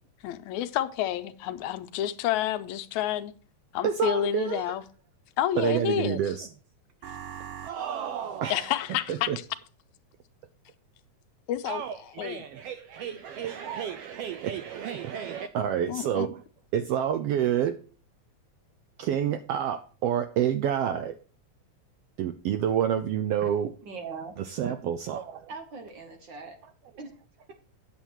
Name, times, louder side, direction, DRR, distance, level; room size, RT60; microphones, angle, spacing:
voice 1, 0.2-3.3 3.7-4.8 5.4-6.2 8.5-9.3 11.5-12.4 15.9-16.3, left 11 dB, 85° left, 2.0 m, -29 dB
voice 2, 3.8-4.8 5.6-6.5 7.0-8.7 9.1-9.4 11.7-16.4 16.7-17.8 19.0-21.2 22.2-23.7 24.4-25.5, right 9 dB, 80° right, 1.4 m, -29 dB
voice 3, 23.8-24.3 25.5-26.6 27.0-27.2, right 4 dB, 55° right, 1.4 m, -40 dB
9.0 x 7.2 x 4.4 m
omnidirectional pair, 3.3 m